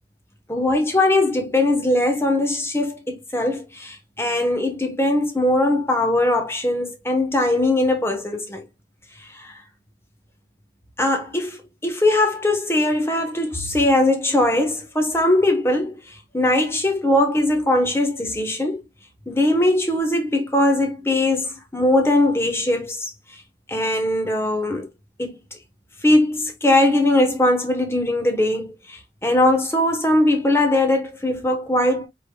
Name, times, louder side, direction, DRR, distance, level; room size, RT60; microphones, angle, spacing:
voice 1, 0.5-8.6 9.3-9.5 11.0-16.0 16.3-18.8 19.3-23.1 23.7-24.9 25.2-25.4 26.0-32.1, left 1 dB, 15° left, 1.1 m, -20 dB
5.2 x 4.0 x 2.2 m
head